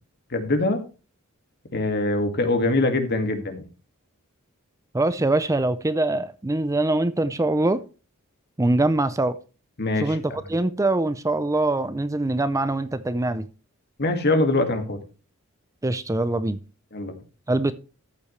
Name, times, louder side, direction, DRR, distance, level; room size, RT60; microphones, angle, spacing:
voice 1, 0.3-0.8 1.7-3.7 9.8-10.2 14.0-15.0 16.9-17.1, left 2 dB, 50° left, 2.1 m, -23 dB
voice 2, 4.9-7.8 8.6-9.4 10.0-13.5 15.8-16.6 17.5-17.7, right 2 dB, 15° right, 0.5 m, -23 dB
13.5 x 8.4 x 3.2 m
head